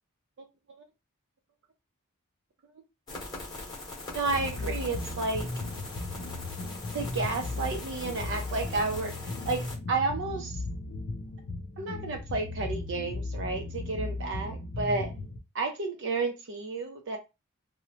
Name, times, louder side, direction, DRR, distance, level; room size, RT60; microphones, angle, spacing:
sound 1, 3.1-9.7, left 2 dB, 20° left, 0.9 m, -42 dB
voice 1, 4.1-5.5 6.9-10.6 11.8-15.1 15.5-17.2, right 3 dB, 55° right, 0.4 m, -31 dB
sound 2, 4.2-15.4, left 2 dB, 55° left, 0.5 m, -36 dB
2.7 x 2.0 x 2.8 m
head